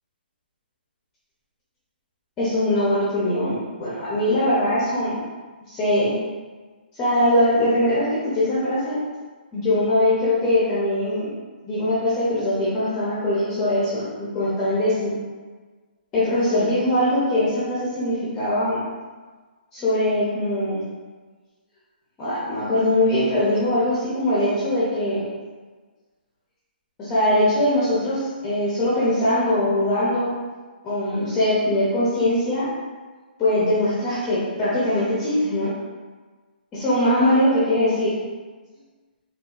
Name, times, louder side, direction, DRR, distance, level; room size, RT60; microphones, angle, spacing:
voice 1, 2.4-5.2 5.7-6.2 6.9-9.0 9.5-11.3 11.6-15.1 16.1-18.8 19.7-20.8 22.2-25.2 27.0-30.3 30.8-32.7 33.4-35.7 36.7-38.2, left 1 dB, 10° left, -9 dB, 0.5 m, -21 dB
3.9 x 2.3 x 2.3 m, 1.4 s
hypercardioid pair, 170°, 6 cm